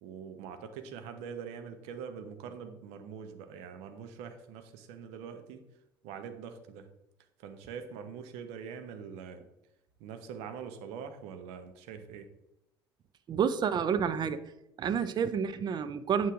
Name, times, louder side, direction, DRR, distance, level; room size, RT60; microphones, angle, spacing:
voice 1, 0.0-5.6 6.0-6.9 7.4-9.4 10.0-12.3, right 7 dB, 55° right, 1.0 m, -43 dB
voice 2, 13.3-14.4 14.8-16.3, right 7 dB, 35° right, 0.6 m, -29 dB
8.3 x 7.3 x 3.6 m
figure-of-eight pair, 60°, 13 cm